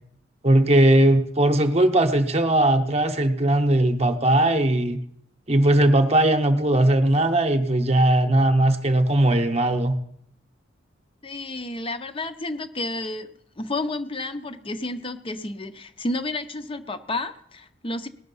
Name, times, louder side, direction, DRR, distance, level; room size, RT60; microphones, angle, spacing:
voice 1, 0.4-5.0 5.5-10.0, right 1 dB, 30° right, 7 dB, 0.9 m, -19 dB
voice 2, 11.2-18.1, left 2 dB, 25° left, 10 dB, 0.7 m, -31 dB
18.5 x 6.5 x 5.5 m, 0.71 s
head